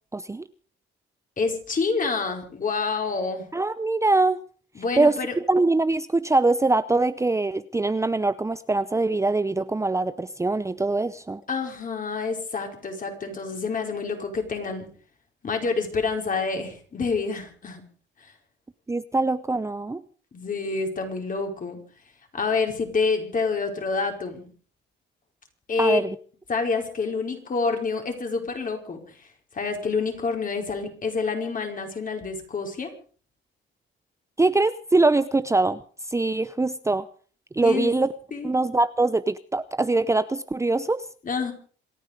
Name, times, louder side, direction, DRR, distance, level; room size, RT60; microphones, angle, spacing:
voice 1, 0.1-0.4 3.5-4.4 5.0-5.2 5.5-11.4 18.9-20.0 25.8-26.2 34.4-35.8 36.1-37.1 37.5-38.1 38.4-41.0, right 2 dB, 15° right, 14 dB, 0.7 m, -23 dB
voice 2, 1.4-3.4 4.7-5.3 11.5-14.9 15.4-17.8 18.2-18.3 20.3-21.8 22.3-24.5 25.7-26.0 26.5-29.3 29.5-32.9 37.6-37.9 38.3-38.5 41.2-41.5, left 4 dB, 45° left, 3 dB, 5.0 m, -27 dB
27.0 x 9.6 x 5.2 m, 0.43 s
cardioid pair, 90°, 20 cm